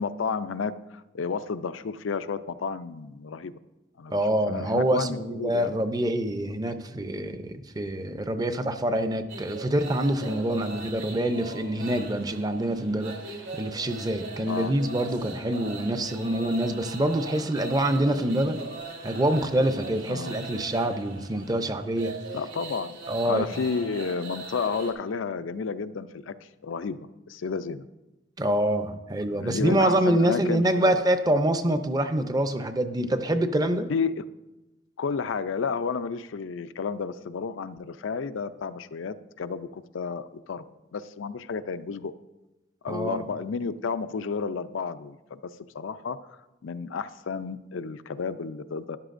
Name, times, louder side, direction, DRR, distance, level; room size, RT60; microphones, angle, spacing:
voice 1, 0.0-3.5 4.0-5.7 14.5-14.7 20.1-20.3 22.3-23.0 23.2-26.3 26.6-27.0 27.3-27.9 29.3-31.0 33.9-34.2 35.0-40.6 40.9-42.1 42.8-46.2 46.6-49.0, left 5 dB, 85° left, 13 dB, 0.5 m, -31 dB
voice 2, 4.1-13.1 13.5-18.6 19.0-22.1 23.1-23.4 28.4-33.9 42.9-43.3, right 1 dB, 20° right, 9 dB, 0.5 m, -26 dB
sound 1, 9.3-24.9, right 3 dB, 65° right, 1.8 m, -40 dB
13.0 x 10.5 x 2.5 m, 1.0 s
head